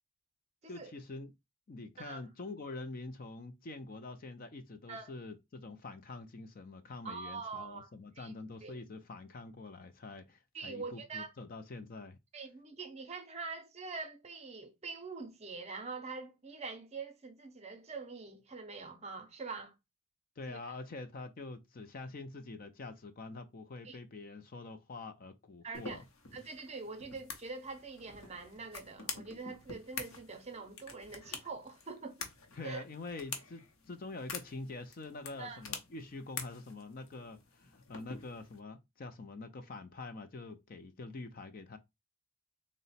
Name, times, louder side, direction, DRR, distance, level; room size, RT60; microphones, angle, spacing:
voice 1, 0.7-1.3 1.7-12.2 20.4-26.0 32.6-41.8, left 3 dB, 40° left, 0.4 m, -45 dB
voice 2, 7.0-7.9 8.2-8.3 8.6-8.8 10.5-11.3 12.3-19.7 20.5-20.8 23.8-24.0 25.6-26.0 26.3-32.2 32.6-32.8 35.4-35.6, right 4 dB, 30° right, 0.6 m, -44 dB
sound 1, 25.7-38.6, left 5 dB, 65° left, 0.8 m, -47 dB
3.8 x 2.1 x 4.1 m
head